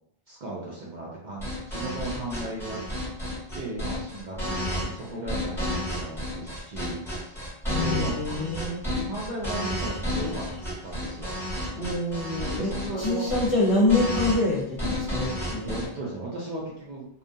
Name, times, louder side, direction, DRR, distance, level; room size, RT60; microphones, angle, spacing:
voice 1, 0.3-2.8 3.5-7.5 7.8-8.4 9.0-10.4 10.8-11.4 12.6-13.3 15.7-17.0, right 2 dB, 55° right, -4 dB, 0.6 m, -36 dB
sound 1, 1.4-15.9, left 1 dB, ahead, 1.0 m, -31 dB
voice 2, 7.7-8.8 11.8-12.7 13.0-15.8, left 2 dB, 35° left, -6 dB, 0.7 m, -26 dB
2.3 x 2.2 x 2.6 m, 0.75 s
omnidirectional pair, 1.0 m